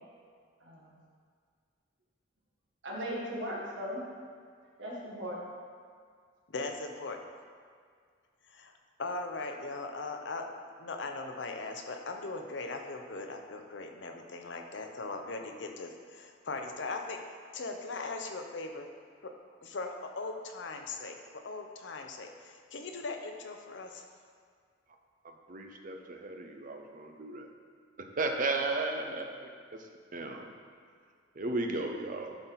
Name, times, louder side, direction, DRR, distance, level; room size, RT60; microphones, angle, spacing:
voice 1, 2.8-4.0 4.8-5.4, equal, 75° right, -3 dB, 1.6 m, -37 dB
voice 2, 6.5-7.2 8.5-8.7 9.0-17.2 17.5-18.8 19.2-19.3 19.6-21.2 21.4-24.1 29.0-29.1, left 3 dB, 70° left, 4 dB, 0.7 m, -39 dB
voice 3, 25.5-27.5 28.0-29.8 30.1-30.5 31.3-32.4, right 2 dB, 45° right, 4 dB, 0.7 m, -35 dB
11.5 x 4.1 x 4.0 m, 2.1 s
head